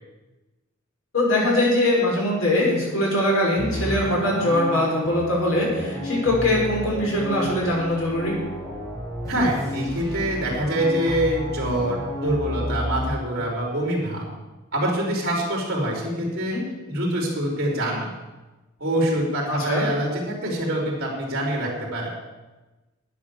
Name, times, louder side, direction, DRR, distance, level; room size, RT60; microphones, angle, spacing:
voice 1, 1.1-8.3 16.5-16.6 19.5-19.8, left 1 dB, 75° left, -3 dB, 5.8 m, -22 dB
sound 1, 3.6-13.0, equal, 15° left, 4.6 m, -31 dB
voice 2, 9.3-14.3 14.7-16.6 16.9-18.1 18.8-22.1, right 1 dB, 50° right, -2 dB, 4.4 m, -25 dB
11.5 x 9.7 x 7.2 m, 1.1 s
head